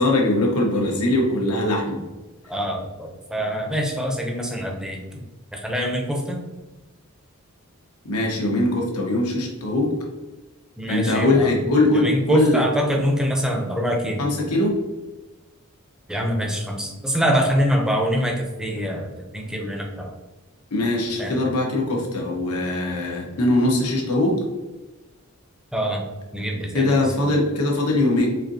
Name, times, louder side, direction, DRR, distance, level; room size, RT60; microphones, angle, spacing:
voice 1, 0.0-2.0 8.0-9.9 10.9-12.6 14.2-14.8 20.7-24.4 26.7-28.3, left 2 dB, 90° left, -1 dB, 1.0 m, -21 dB
voice 2, 2.4-5.2 5.5-6.4 10.8-11.6 11.9-14.3 16.1-20.1 21.2-21.4 25.7-26.0 26.3-27.3, equal, 5° right, 0 dB, 0.5 m, -25 dB
4.3 x 2.6 x 2.7 m, 1.1 s
head